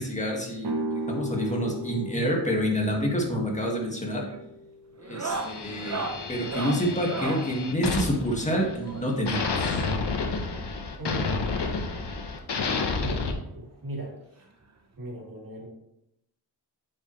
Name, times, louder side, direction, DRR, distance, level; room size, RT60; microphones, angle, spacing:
voice 1, 0.0-4.3 5.0-9.9, equal, 15° left, -1 dB, 1.9 m, -28 dB
sound 1, 0.6-6.4, right 1 dB, 80° right, 1.0 m, -37 dB
sound 2, 3.4-3.8 4.1-4.4 5.0-7.5 8.8-10.2 11.2-11.3 11.6-11.7 12.1-12.2 13.5-13.6 14.9-15.0, right 3 dB, 40° right, 1.0 m, -36 dB
sound 3, 5.3-8.9 9.3-13.3, left 4 dB, 90° left, 1.1 m, -30 dB
voice 2, 11.0-11.7 13.0-14.1 15.0-15.7, right 1 dB, 55° right, -3 dB, 3.0 m, -38 dB
8.4 x 7.4 x 3.2 m, 0.81 s
wide cardioid pair, 115°, 40 cm